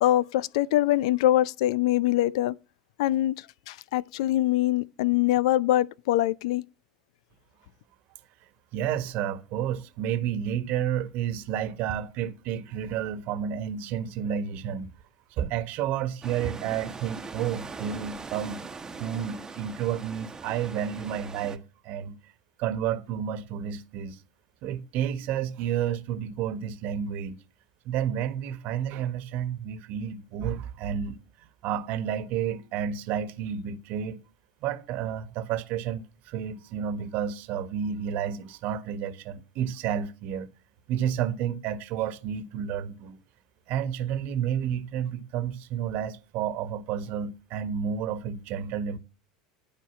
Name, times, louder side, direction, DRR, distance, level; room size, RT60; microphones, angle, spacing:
voice 1, 0.0-2.6 3.0-6.6, left 14 dB, 65° left, 0.4 m, -24 dB
voice 2, 8.7-14.9 15.3-18.6 19.0-22.2 22.6-24.2 24.6-27.4 27.8-31.2 31.6-34.2 34.6-40.5 40.9-43.2 43.7-49.0, right 9 dB, 50° right, 1.3 m, -31 dB
sound 1, 16.2-21.6, right 4 dB, 15° right, 1.2 m, -41 dB
12.5 x 5.2 x 7.3 m
figure-of-eight pair, 80°, 4 cm